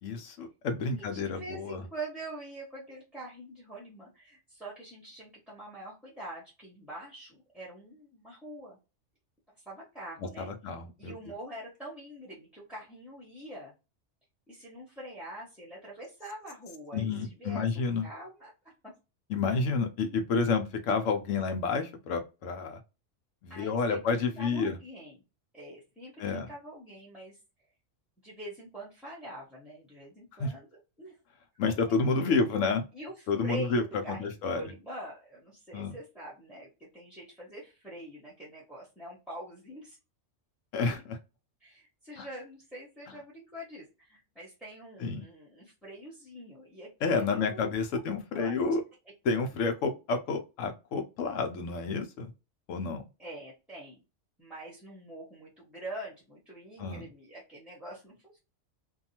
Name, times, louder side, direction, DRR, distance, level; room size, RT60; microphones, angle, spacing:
voice 1, 0.0-1.8 10.4-11.2 16.9-18.1 19.3-22.8 23.4-24.8 26.2-26.5 30.4-30.5 31.6-32.9 33.3-34.6 35.7-35.9 40.7-41.2 42.2-42.3 45.0-45.2 47.0-48.8 49.2-52.3 52.7-53.0 56.8-57.0, left 4 dB, 85° left, 1.0 m, -30 dB
voice 2, 1.1-8.8 9.6-10.5 11.0-13.7 14.5-18.9 23.5-25.2 25.5-27.4 28.2-31.2 32.1-32.4 32.9-40.0 41.6-47.8 48.3-48.8 53.2-54.0 54.4-58.4, right 1 dB, ahead, 0.7 m, -45 dB
2.7 x 2.3 x 2.8 m
omnidirectional pair, 1.3 m